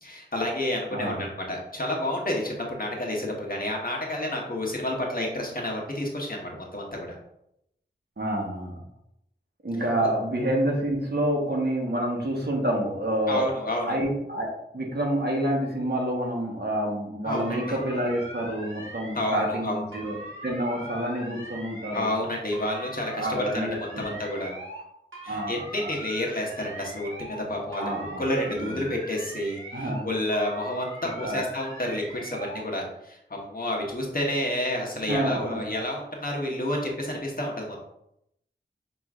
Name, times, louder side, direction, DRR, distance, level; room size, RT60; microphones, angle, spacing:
voice 1, 0.0-7.1 10.0-10.1 13.3-13.8 17.2-17.8 19.1-19.8 21.9-24.5 25.2-37.8, left 1 dB, 45° left, -1 dB, 1.1 m, -30 dB
voice 2, 0.9-1.2 8.2-8.8 9.6-14.5 14.7-22.1 23.1-24.2 25.3-25.9 27.8-28.9 29.7-30.1 31.2-31.4 35.1-35.7, right 1 dB, 55° right, -1 dB, 1.1 m, -28 dB
sound 1, 17.3-19.6 19.9-22.2 22.5-24.8 25.1-27.4 27.7-30.0 30.3-32.6, right 1 dB, 80° right, 1.2 m, -41 dB
5.9 x 3.0 x 2.4 m, 0.79 s
wide cardioid pair, 50°, 20 cm